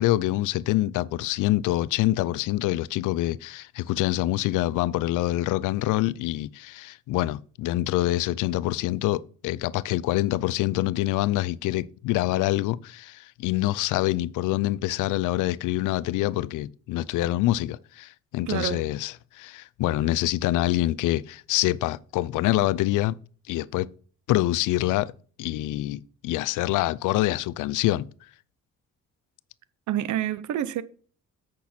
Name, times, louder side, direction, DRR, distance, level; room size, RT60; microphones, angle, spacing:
voice 1, 0.0-23.1 23.5-23.9 24.3-25.1 25.4-28.1, left 16 dB, 85° left, 0.5 m, -26 dB
voice 2, 18.5-18.8 29.9-30.8, right 12 dB, 75° right, 0.7 m, -27 dB
8.4 x 6.2 x 4.2 m
cardioid pair, 90°, 30 cm